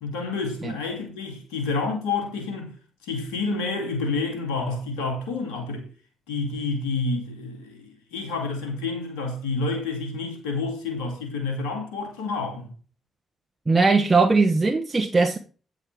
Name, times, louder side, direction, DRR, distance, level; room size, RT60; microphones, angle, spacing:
voice 1, 0.0-2.7 3.0-5.9 6.3-12.7, left 3 dB, 85° left, 2.3 m, -29 dB
voice 2, 13.7-15.4, right 3 dB, 25° right, 1.1 m, -19 dB
8.8 x 6.2 x 4.6 m
hypercardioid pair, 45°, 0 cm